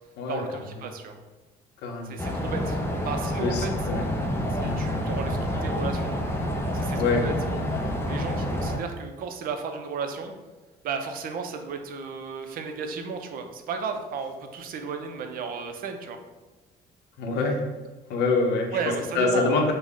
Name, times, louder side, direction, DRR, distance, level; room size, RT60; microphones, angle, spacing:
voice 1, 0.3-1.2 2.1-2.8 3.0-3.7 4.5-6.1 6.7-10.3 10.8-16.2 18.7-19.7, right 5 dB, 60° right, 6 dB, 0.4 m, -34 dB
voice 2, 1.8-2.2 3.4-4.0 4.4-4.8 7.0-7.2 17.2-17.6 18.1-18.8 19.1-19.7, left 4 dB, 80° left, 2 dB, 0.6 m, -25 dB
sound 1, 2.2-8.8, equal, 15° left, 0.4 m, -28 dB
3.4 x 2.1 x 3.6 m, 1.2 s
cardioid pair, 110°, 17 cm